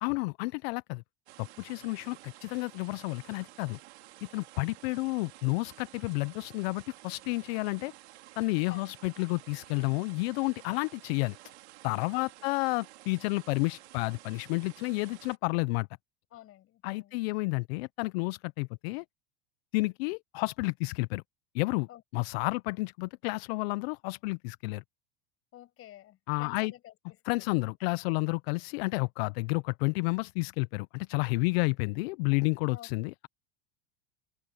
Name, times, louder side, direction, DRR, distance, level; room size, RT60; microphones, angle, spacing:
voice 1, 0.0-1.0 1.4-3.8 4.3-7.9 8.4-11.4 11.8-15.9 16.8-19.0 19.7-21.2 21.5-21.9 22.1-24.8 26.3-26.7 27.3-33.3, left 26 dB, 70° left, 0.6 m, -31 dB
sound 1, 1.3-15.4, right 18 dB, 85° right, 3.1 m, -53 dB
voice 2, 12.1-12.5 16.3-17.3 21.9-22.0 25.5-26.9 27.3-27.6 32.7-32.9, left 13 dB, 45° left, 6.4 m, -51 dB
supercardioid pair, 120°, 32 cm